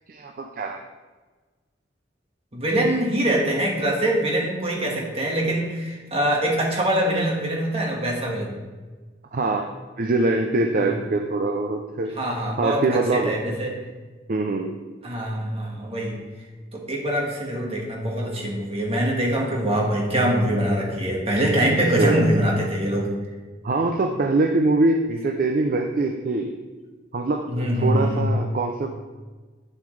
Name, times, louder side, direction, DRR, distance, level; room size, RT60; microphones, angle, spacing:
voice 1, 0.1-0.8 9.3-9.7 10.0-12.1 12.6-13.4 14.3-14.8 22.0-22.3 23.6-26.5 27.1-28.9, right 2 dB, 50° right, 5 dB, 0.5 m, -23 dB
voice 2, 2.5-8.6 10.7-10.9 12.0-13.7 15.0-16.2 16.7-23.1 27.5-28.3, right 1 dB, 30° right, -2 dB, 1.6 m, -23 dB
8.8 x 7.0 x 3.3 m, 1.3 s
head